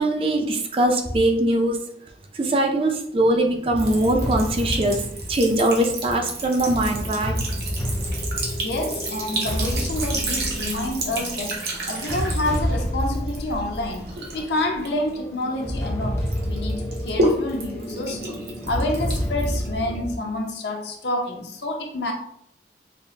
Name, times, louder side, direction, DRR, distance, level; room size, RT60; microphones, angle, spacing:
voice 1, 0.0-1.8 2.3-7.5, right 1 dB, 30° right, 4 dB, 0.4 m, -22 dB
sound 1, 3.2-20.2, equal, 15° left, 0.6 m, -30 dB
Sink (filling or washing) / Trickle dribble, 3.8-15.9 16.3-20.1, right 2 dB, 60° right, 0.9 m, -31 dB
voice 2, 8.6-14.1 14.3-18.4 18.7-22.1, left 1 dB, 75° left, 2 dB, 0.7 m, -28 dB
5.3 x 2.1 x 2.7 m, 0.68 s
head